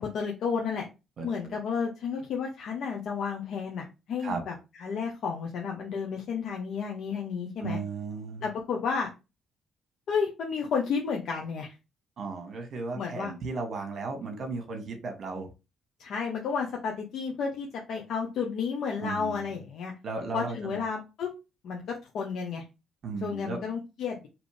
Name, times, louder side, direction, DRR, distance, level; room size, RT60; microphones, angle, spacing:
voice 1, 0.0-0.9 1.2-7.8 8.4-9.1 10.1-11.7 12.9-13.3 16.0-19.9 20.3-21.3 21.6-22.6 23.2-24.3, left 6 dB, 70° left, 0 dB, 0.9 m, -32 dB
voice 2, 1.2-1.6 4.2-4.4 7.6-8.4 12.2-15.5 19.0-19.5 20.0-20.8 23.0-23.6, right 4 dB, 60° right, 4 dB, 1.4 m, -35 dB
4.2 x 3.1 x 3.3 m, 0.27 s
cardioid pair, 90°, 0 cm